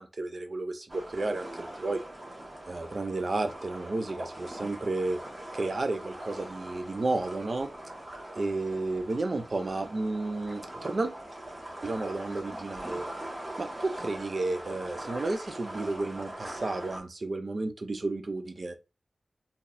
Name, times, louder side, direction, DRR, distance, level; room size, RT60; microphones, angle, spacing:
voice 1, 0.0-2.0 2.7-5.2 5.5-7.7 8.3-11.1 11.8-13.0 13.6-18.7, right 2 dB, 55° right, 8 dB, 0.4 m, -32 dB
sound 1, 0.9-17.0, right 1 dB, 35° right, 1.3 m, -42 dB
3.8 x 2.7 x 2.5 m, 0.28 s
wide cardioid pair, 90°, 0 cm